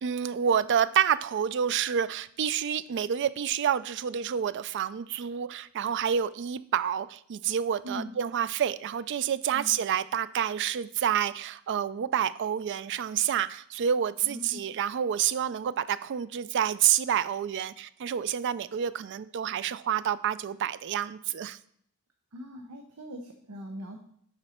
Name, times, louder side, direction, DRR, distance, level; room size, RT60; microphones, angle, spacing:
voice 1, 0.0-21.6, right 8 dB, 55° right, 16 dB, 0.3 m, -28 dB
voice 2, 14.2-14.7 22.3-24.0, equal, 90° right, 4 dB, 0.8 m, -41 dB
7.8 x 5.3 x 4.3 m, 0.66 s
head